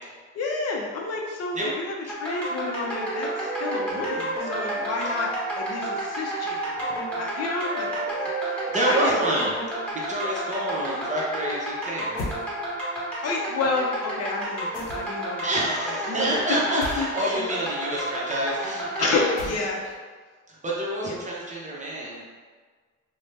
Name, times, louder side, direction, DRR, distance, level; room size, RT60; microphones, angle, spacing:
voice 1, 0.3-5.3 5.6-8.3 8.9-9.4 13.2-16.6 17.0-17.1 19.0-19.8 21.0-21.2, left 3 dB, 55° left, -1 dB, 0.5 m, -30 dB
sound 1, 2.1-19.5, right 1 dB, 5° left, 1.2 m, -32 dB
Wind instrument woodwind instrument, 2.5-9.9, right 4 dB, 90° right, 0.6 m, -34 dB
voice 2, 8.4-9.5 9.9-12.2 15.4-19.3 20.6-22.2, right 1 dB, 25° right, -5 dB, 0.7 m, -27 dB
sound 2, 12.2-12.4 14.7-15.3 16.8-17.1 19.4-19.9, left 2 dB, 85° left, 0.8 m, -35 dB
2.6 x 2.1 x 3.2 m, 1.5 s
cardioid pair, 90°, 30 cm